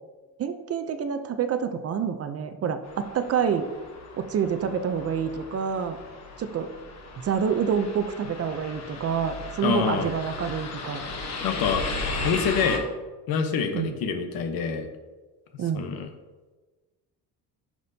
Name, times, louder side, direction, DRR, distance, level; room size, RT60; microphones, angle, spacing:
voice 1, 0.4-3.7 4.1-6.0 6.4-6.7 7.2-11.0 13.7-14.0 15.6-15.9, right 7 dB, 40° right, 9 dB, 0.6 m, -27 dB
sound 1, 2.9-12.8, left 2 dB, 45° left, 1.2 m, -36 dB
voice 2, 9.6-10.1 11.4-11.8 12.2-12.9 13.3-14.9 15.7-16.1, left 6 dB, 65° left, 7 dB, 1.0 m, -26 dB
10.5 x 6.1 x 2.8 m, 1.3 s
cardioid pair, 140°, 38 cm